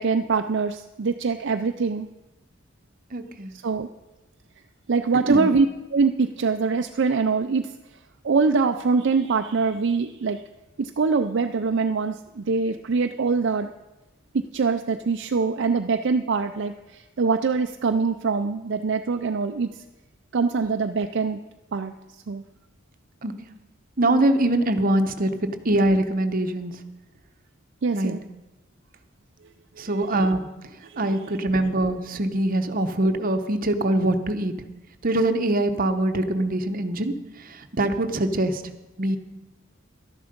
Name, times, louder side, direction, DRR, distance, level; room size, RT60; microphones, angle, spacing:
voice 1, 0.0-2.1 3.6-3.9 4.9-5.7 5.9-7.7 8.2-10.4 10.8-13.7 14.3-19.7 20.3-21.4 21.7-21.9 22.3-22.4 27.8-28.2 29.8-29.9 30.8-31.2, right 4 dB, 60° right, 6 dB, 0.5 m, -23 dB
voice 2, 3.1-3.5 5.3-5.5 23.2-23.3 24.0-25.3 25.6-26.7 27.9-28.1 29.8-30.4 31.0-34.5 35.0-37.1 37.4-38.7 39.0-39.2, right 1 dB, 45° right, 7 dB, 1.0 m, -23 dB
12.5 x 10.5 x 5.2 m, 1.1 s
head